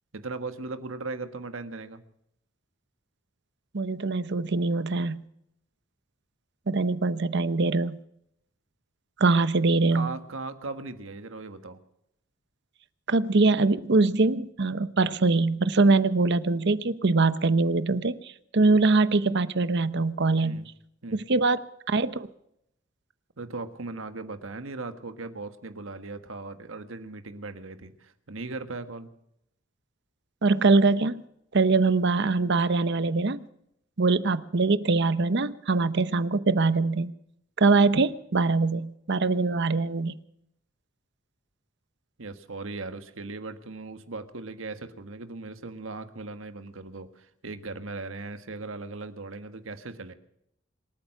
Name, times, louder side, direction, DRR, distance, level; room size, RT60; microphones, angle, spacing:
voice 1, 0.1-2.0 9.9-11.8 20.4-20.7 21.0-21.2 23.4-29.1 42.2-50.1, right 3 dB, 80° right, 9 dB, 1.5 m, -38 dB
voice 2, 3.7-5.2 6.7-8.0 9.2-10.1 13.1-20.7 21.1-21.6 21.9-22.3 30.4-31.2 31.5-33.5 34.0-37.1 37.6-40.1, right 3 dB, 60° right, 14 dB, 0.8 m, -23 dB
26.0 x 9.0 x 5.9 m, 0.76 s
head